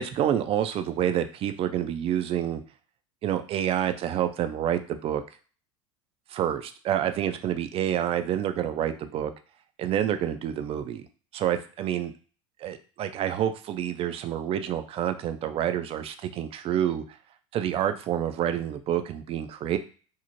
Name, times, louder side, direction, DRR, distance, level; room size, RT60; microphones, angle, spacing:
voice 1, 0.0-2.6 3.2-5.2 6.3-9.3 9.8-11.1 11.3-12.1 12.6-17.0 17.5-19.8, right 10 dB, 35° right, 9 dB, 0.4 m, -28 dB
2.6 x 2.0 x 3.0 m, 0.39 s
hypercardioid pair, 75°, 17 cm